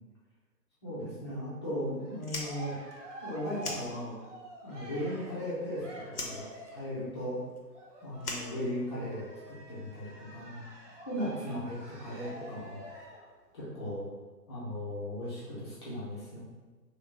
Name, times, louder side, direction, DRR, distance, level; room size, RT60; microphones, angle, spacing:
voice 1, 0.8-2.7 3.2-4.1 4.6-5.8 6.2-7.4 8.0-10.6 11.1-12.8 13.5-14.1 14.5-16.4, equal, 15° left, -9 dB, 0.6 m, -37 dB
Cheering, 2.0-7.0 7.7-13.3, equal, 45° right, 1.0 m, -47 dB
Fire, 2.2-4.5 4.7-5.7 6.1-9.3, left 2 dB, 65° left, 0.8 m, -41 dB
3.1 x 2.9 x 3.0 m, 1.3 s
figure-of-eight pair, 130°, 49 cm